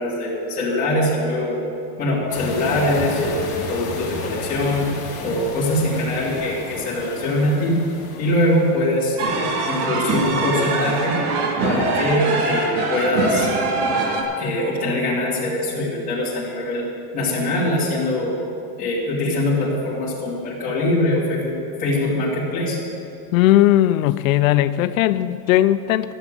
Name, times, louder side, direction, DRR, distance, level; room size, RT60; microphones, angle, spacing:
voice 1, 0.0-1.6 2.0-4.9 5.2-7.8 8.2-11.2 11.6-13.5 14.4-16.8 17.1-18.4 18.8-22.8, left 1 dB, 20° left, -7 dB, 3.0 m, -22 dB
sound 1, 2.3-9.1, left 2 dB, 35° left, 3.0 m, -32 dB
sound 2, 9.2-14.2, right 3 dB, 85° right, 2.0 m, -23 dB
voice 2, 23.3-26.1, left 14 dB, 65° left, 14 dB, 0.5 m, -17 dB
14.0 x 7.4 x 7.6 m, 2.5 s
supercardioid pair, 180°, 45 cm